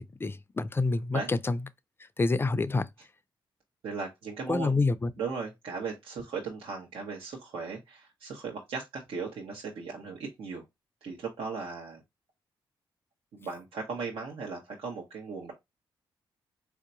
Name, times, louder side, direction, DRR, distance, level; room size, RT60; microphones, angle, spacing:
voice 1, 0.0-1.6 2.2-2.9 4.5-5.1, left 3 dB, 25° left, 0.4 m, -27 dB
voice 2, 3.8-4.7 5.2-10.6 11.0-12.0 13.3-15.5, right 4 dB, 80° right, 1.0 m, -37 dB
4.5 x 2.7 x 2.6 m
cardioid pair, 70°, 9 cm